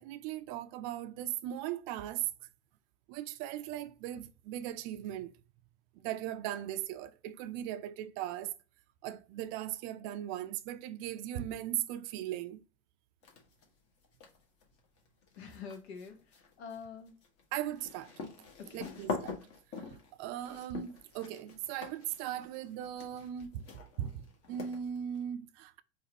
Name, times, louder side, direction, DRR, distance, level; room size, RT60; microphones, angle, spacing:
voice 1, 0.0-2.3 3.1-5.3 6.0-8.5 9.0-12.6 17.5-18.1 18.7-19.4 20.2-23.7 24.0-25.8, right 11 dB, 45° right, 0.5 m, -38 dB
sound 1, 13.2-13.7 14.0-25.2, left 4 dB, 40° left, 1.3 m, -44 dB
voice 2, 15.4-17.2 18.6-19.0, left 5 dB, 65° left, 1.0 m, -46 dB
4.1 x 2.5 x 2.9 m
hypercardioid pair, 95°, 34 cm